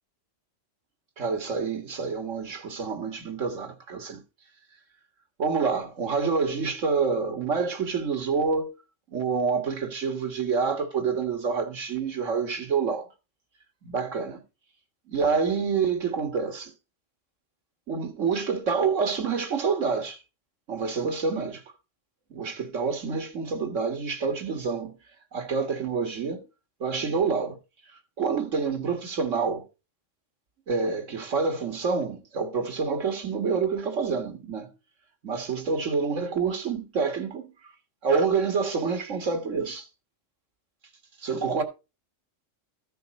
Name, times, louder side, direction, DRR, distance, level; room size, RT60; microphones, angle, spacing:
voice 1, 1.2-4.2 5.4-8.7 9.1-13.1 13.8-14.4 15.1-16.7 17.9-20.2 20.7-21.6 22.3-25.0 25.3-26.4 26.8-27.6 28.2-29.7 30.7-34.7 35.2-37.5 38.0-39.9 41.2-41.6, right 5 dB, 85° right, 2.0 m, -27 dB
13.5 x 5.8 x 4.2 m
omnidirectional pair, 1.3 m